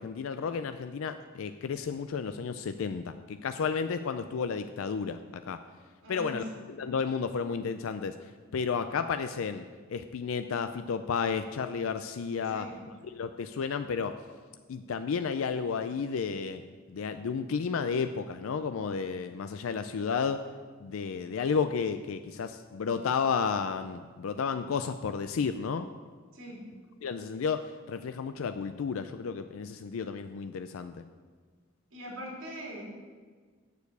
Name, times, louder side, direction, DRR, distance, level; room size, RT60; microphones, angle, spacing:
voice 1, 0.0-5.6 6.1-8.1 8.5-9.6 9.9-12.7 13.1-14.1 14.7-16.6 16.9-20.4 20.8-25.9 27.0-31.0, left 5 dB, 75° left, 9 dB, 0.4 m, -32 dB
voice 2, 6.0-6.5 12.5-12.8 26.3-26.6 31.9-32.8, equal, 65° right, -3 dB, 3.2 m, -41 dB
7.1 x 6.8 x 8.0 m, 1.5 s
head